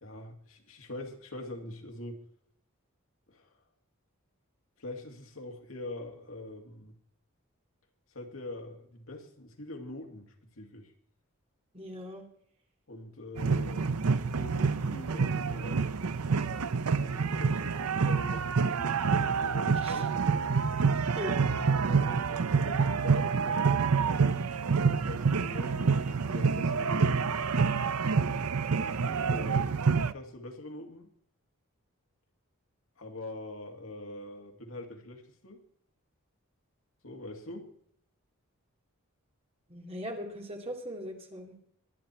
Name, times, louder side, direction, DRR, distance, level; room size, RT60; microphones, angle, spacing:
voice 1, 0.0-2.2 3.3-3.6 4.8-7.0 8.1-10.9 12.9-16.0 16.2-20.5 21.6-23.7 24.8-27.3 28.2-28.4 28.7-31.1 33.0-35.6 37.0-37.7, left 1 dB, 65° left, 3 dB, 2.5 m, -44 dB
voice 2, 11.7-12.3 19.8-20.0 21.2-21.3 39.7-41.6, equal, 25° right, 2 dB, 2.6 m, -39 dB
sound 1, 13.4-30.1, right 5 dB, 90° right, 0.6 m, -27 dB
23.5 x 10.0 x 4.5 m, 0.64 s
head